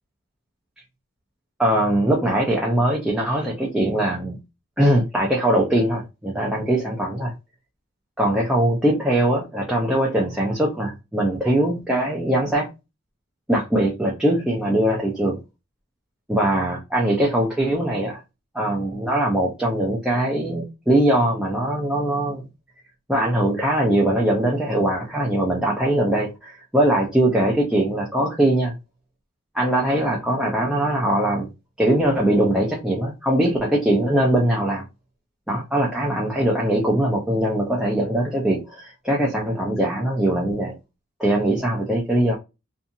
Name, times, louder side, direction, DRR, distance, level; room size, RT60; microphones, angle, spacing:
voice 1, 1.6-4.4 4.8-7.3 8.2-12.7 13.5-15.4 16.3-18.2 18.5-22.4 23.1-28.7 29.5-31.5 31.8-34.8 35.5-40.7 41.2-42.4, right 1 dB, 5° right, 0.5 m, -21 dB
2.7 x 2.4 x 2.6 m
head